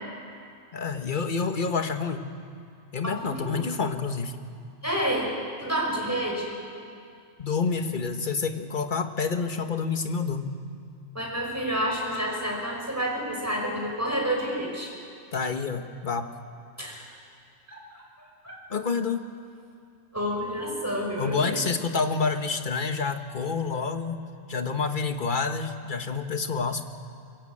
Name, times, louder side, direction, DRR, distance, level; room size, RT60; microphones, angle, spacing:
voice 1, 0.7-2.2 2.9-4.4 7.4-10.5 15.3-16.3 18.7-19.3 21.2-24.2 24.5-26.8, left 5 dB, 40° left, 7 dB, 1.4 m, -28 dB
voice 2, 3.0-3.6 4.8-5.3 5.6-6.5 11.1-14.9 16.8-17.1 17.7-18.0 18.4-18.6 20.1-21.6, equal, 10° right, -1 dB, 5.6 m, -29 dB
23.5 x 22.5 x 8.7 m, 2.4 s
omnidirectional pair, 1.4 m